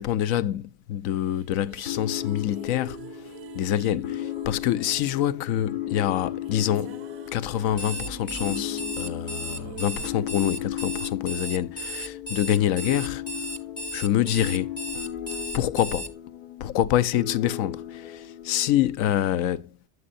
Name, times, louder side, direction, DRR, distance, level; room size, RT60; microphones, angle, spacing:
voice 1, 0.0-3.1 3.5-7.0 7.3-13.2 13.9-14.8 15.5-16.1 16.6-19.7, left 11 dB, 50° left, 0.5 m, -26 dB
sound 1, 1.2-11.6, right 9 dB, 30° right, 0.5 m, -46 dB
sound 2, 1.8-19.3, left 12 dB, 90° left, 0.9 m, -36 dB
Alarm, 7.7-16.1, equal, 10° left, 0.7 m, -35 dB
7.7 x 7.6 x 2.6 m
supercardioid pair, 140°, 49 cm